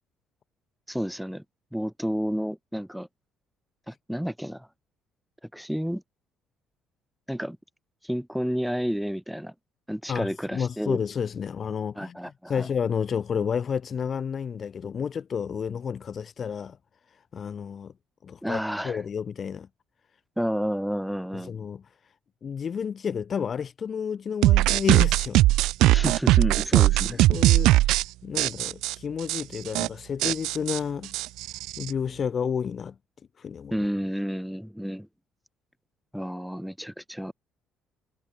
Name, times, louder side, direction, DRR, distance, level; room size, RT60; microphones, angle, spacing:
voice 1, 0.9-1.4 1.7-3.1 3.9-4.7 5.5-6.0 7.3-7.6 8.0-9.5 9.9-11.0 11.9-12.7 18.4-19.0 20.4-21.5 25.9-27.3 33.7-35.1 36.1-37.3, equal, ahead, 2.9 m, -30 dB
voice 2, 10.1-12.2 12.5-16.8 17.3-17.9 18.2-18.6 18.8-19.7 21.3-21.8 22.4-25.5 27.3-27.7 28.2-31.1 31.8-32.9 33.4-33.7, left 7 dB, 35° left, 0.7 m, -30 dB
sound 1, 24.4-28.0 28.4-28.9 29.3-29.4 29.7-29.9 30.2-31.9, right 17 dB, 85° right, 0.7 m, -20 dB
cardioid pair, 135°, 0 cm